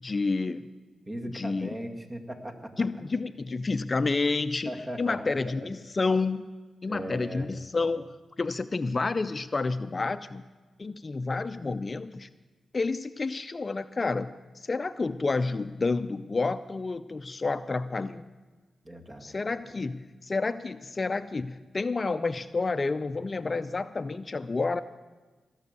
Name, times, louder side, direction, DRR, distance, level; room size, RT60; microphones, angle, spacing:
voice 1, 0.0-0.7 1.3-1.7 2.8-4.7 5.0-6.5 6.8-10.4 10.8-12.3 12.7-14.3 14.6-18.2 19.2-24.8, left 3 dB, 40° left, 13 dB, 0.5 m, -29 dB
voice 2, 1.0-2.9 4.7-5.3 6.9-7.5 18.8-19.3, right 1 dB, 30° right, 3 dB, 2.1 m, -38 dB
19.0 x 6.4 x 8.2 m, 1.3 s
supercardioid pair, 45°, 0 cm